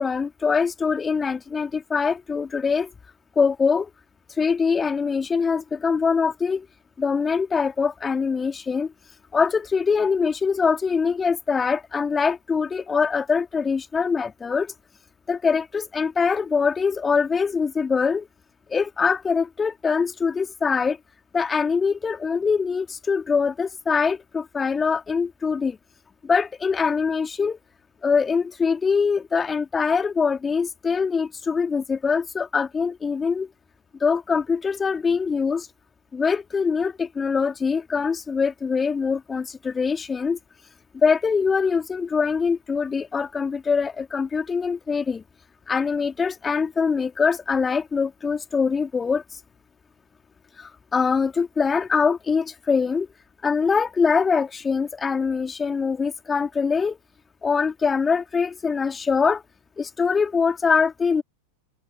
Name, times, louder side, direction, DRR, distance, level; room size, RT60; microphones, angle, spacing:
voice 1, 0.0-2.9 3.4-3.9 4.4-6.6 7.0-8.9 9.3-14.7 15.3-18.3 18.7-21.0 21.3-25.8 26.3-27.6 28.0-33.5 34.0-35.7 36.1-40.4 41.0-45.2 45.7-49.2 50.9-53.1 53.4-57.0 57.4-59.4 59.8-61.2, left 5 dB, 15° left, 3.6 m, -23 dB
figure-of-eight pair, 90°, 0 cm